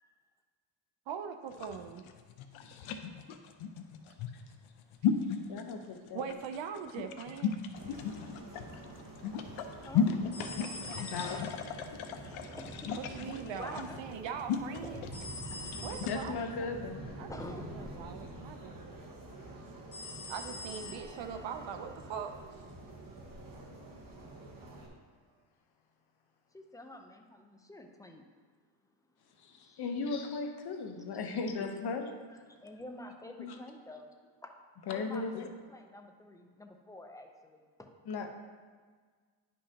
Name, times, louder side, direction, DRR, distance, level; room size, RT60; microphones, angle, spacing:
voice 1, 1.1-2.1 6.1-7.6 13.0-15.1 15.8-16.3 16.6-16.8 17.2-19.0 20.3-22.4, right 7 dB, 65° right, 8 dB, 0.7 m, -41 dB
sound 1, 1.5-16.2, left 7 dB, 80° left, 0.7 m, -35 dB
voice 2, 2.6-3.0 5.5-6.2 10.1-10.6 11.0-11.4 15.8-17.0 29.4-32.1 33.4-33.6 34.9-35.5 38.1-38.3, left 4 dB, 55° left, 4 dB, 0.9 m, -37 dB
sound 2, 7.8-24.9, right 1 dB, 45° right, 1.4 m, -47 dB
sound 3, 10.3-11.9 15.1-16.4 19.9-21.3, left 2 dB, 30° left, 1.2 m, -45 dB
voice 3, 12.6-12.9 13.4-14.0 14.8-15.1 17.3-18.1 26.5-28.2 29.6-29.8 31.1-31.2 32.3-34.1 34.4-34.6 34.9-37.9, left 1 dB, 5° left, 4 dB, 0.6 m, -48 dB
10.0 x 5.5 x 2.8 m, 1.5 s
cardioid pair, 110°, 47 cm